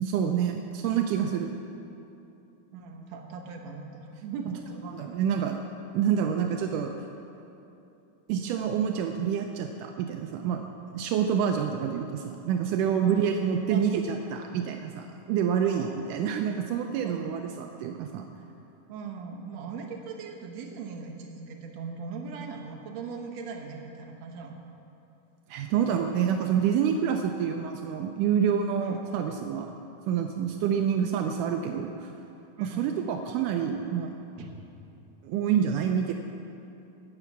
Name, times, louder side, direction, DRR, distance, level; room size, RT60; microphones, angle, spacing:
voice 1, 0.0-1.6 4.8-5.6 5.9-6.9 8.3-10.6 10.9-18.3 25.5-29.7 30.1-32.1 32.6-34.1 35.2-36.1, right 8 dB, 85° right, 4 dB, 1.9 m, -27 dB
voice 2, 2.7-4.9 13.0-13.3 13.7-13.8 15.7-16.1 17.0-17.4 18.9-24.6 28.8-29.0 32.6-32.9 34.4-34.6, right 5 dB, 60° right, 1 dB, 2.0 m, -39 dB
17.5 x 6.9 x 7.2 m, 2.8 s
omnidirectional pair, 4.3 m